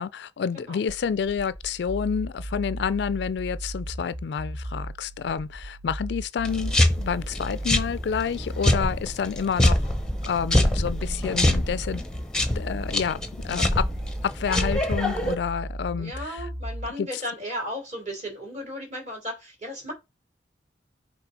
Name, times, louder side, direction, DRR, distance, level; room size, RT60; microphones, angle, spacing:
voice 1, 0.0-9.9 10.3-12.0 12.6-13.9 14.2-16.5 17.0-17.1, left 6 dB, 65° left, 0.3 m, -29 dB
sound 1, 0.9-16.9, right 1 dB, 65° right, 0.9 m, -36 dB
sound 2, 6.4-15.3, left 1 dB, 5° left, 0.7 m, -25 dB
voice 2, 16.0-19.9, equal, 40° right, 3.2 m, -35 dB
5.8 x 3.3 x 5.1 m
head